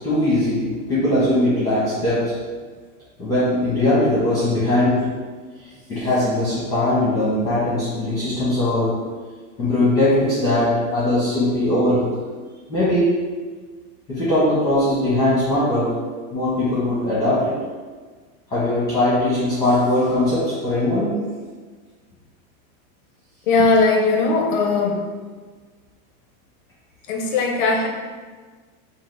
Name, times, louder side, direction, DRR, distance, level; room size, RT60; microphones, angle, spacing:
voice 1, 0.0-2.4 3.2-5.1 5.6-9.0 9.6-12.1 12.7-13.2 14.1-16.0 16.3-17.5 18.5-21.2, left 1 dB, 10° left, -10 dB, 0.8 m, -20 dB
voice 2, 23.5-25.1 27.1-27.9, left 3 dB, 40° left, 1 dB, 0.5 m, -19 dB
6.1 x 2.0 x 3.2 m, 1.5 s
supercardioid pair, 175°, 41 cm